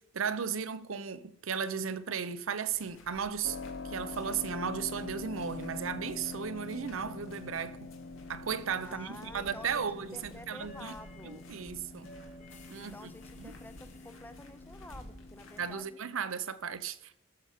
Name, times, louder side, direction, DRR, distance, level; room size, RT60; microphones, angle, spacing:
voice 1, 0.0-3.6 3.8-7.9 8.3-10.9 11.2-12.1 12.7-12.9 13.4-13.5 15.6-17.0, right 6 dB, 85° right, 0.7 m, -35 dB
sound 1, 2.7-15.8, left 1 dB, 80° left, 2.1 m, -55 dB
Keyboard (musical), 3.4-16.0, left 3 dB, 60° left, 0.4 m, -45 dB
sound 2, 5.3-15.6, equal, 35° left, 2.0 m, -56 dB
voice 2, 8.8-11.4 12.7-16.0, left 1 dB, 10° left, 0.6 m, -50 dB
19.5 x 6.9 x 5.0 m
head